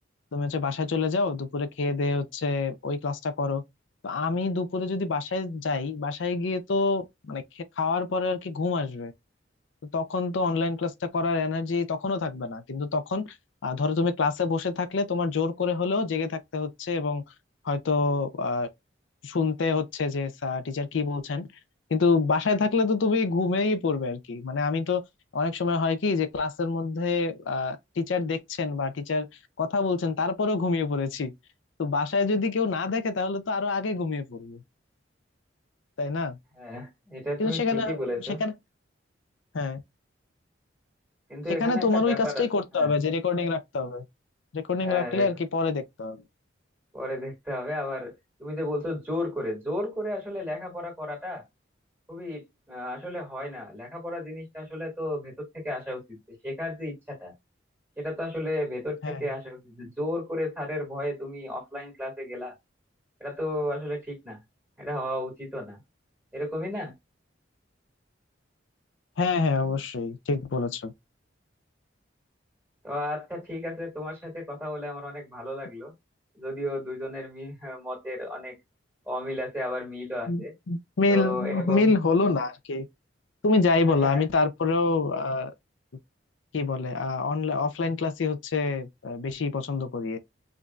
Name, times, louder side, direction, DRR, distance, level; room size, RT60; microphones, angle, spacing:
voice 1, 0.3-3.6 4.0-9.1 9.9-13.2 13.6-17.2 17.6-18.7 19.2-21.5 21.9-25.0 25.3-29.3 29.6-31.3 31.8-34.6 36.0-36.4 37.4-38.0 38.4-38.5 39.5-39.8 41.6-44.0 44.5-46.2 59.0-59.2 69.2-70.9 80.3-80.4 80.7-82.9 83.4-85.5 86.5-90.2, left 4 dB, 80° left, 0.5 m, -26 dB
voice 2, 36.6-38.4 41.3-42.5 42.7-43.0 44.8-45.3 46.9-48.1 48.4-51.4 52.1-56.0 56.3-57.3 58.0-62.5 63.2-64.4 64.8-65.8 66.3-66.9 72.8-75.9 76.4-78.6 79.1-80.5 81.1-81.9 83.9-84.3, left 1 dB, 10° right, 1.9 m, -33 dB
5.0 x 2.6 x 2.3 m
head